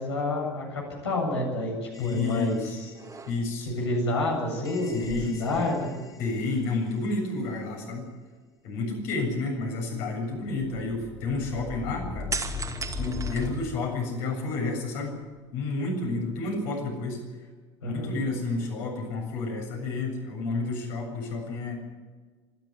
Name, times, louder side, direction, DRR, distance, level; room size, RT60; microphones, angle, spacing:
voice 1, 0.0-2.9 3.6-6.0 17.8-18.1, left 2 dB, 75° left, -1 dB, 7.8 m, -29 dB
sound 1, 1.9-3.0 4.7-6.5 10.4-13.5, left 4 dB, 25° left, 3.7 m, -39 dB
voice 2, 2.0-2.8 3.3-3.7 4.8-5.6 6.2-8.1 8.6-12.5 12.9-15.1 15.5-17.2 17.8-21.8, left 3 dB, 60° left, 1 dB, 7.5 m, -30 dB
sound 2, 2.2-2.5 2.9-3.7 4.9-6.2 6.5-6.7 12.3-14.1 14.6-15.5, right 4 dB, 20° right, 2.5 m, -38 dB
26.0 x 12.0 x 9.8 m, 1.4 s
figure-of-eight pair, 70°, 14 cm